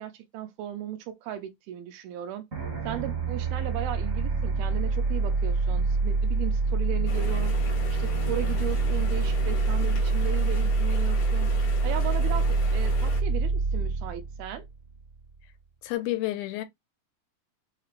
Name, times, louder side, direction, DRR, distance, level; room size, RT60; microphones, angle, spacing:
voice 1, 0.0-2.4 2.8-7.6 7.9-14.6, right 11 dB, 90° right, 2.5 m, -36 dB
sound 1, 2.5-15.2, right 3 dB, 35° right, 1.3 m, -26 dB
sound 2, 7.1-13.2, left 4 dB, 60° left, 1.7 m, -39 dB
voice 2, 15.8-16.6, left 16 dB, 85° left, 2.4 m, -29 dB
5.7 x 3.0 x 2.5 m
omnidirectional pair, 4.2 m